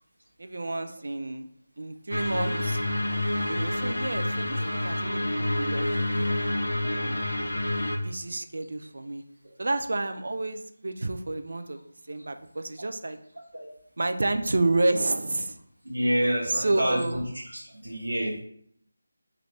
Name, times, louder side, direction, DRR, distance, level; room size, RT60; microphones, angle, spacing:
voice 1, 0.4-1.5 1.8-2.8 3.5-6.1 6.9-7.2 8.0-9.2 9.6-11.8 12.1-13.2 14.0-15.5 16.5-17.2, right 2 dB, 60° right, 8 dB, 0.3 m, -30 dB
sound 1, 2.1-8.0, left 1 dB, 75° left, 0.5 m, -28 dB
voice 2, 15.8-17.2 17.5-18.4, equal, 80° right, -2 dB, 1.2 m, -28 dB
3.3 x 2.4 x 3.1 m, 0.66 s
figure-of-eight pair, 165°, 0 cm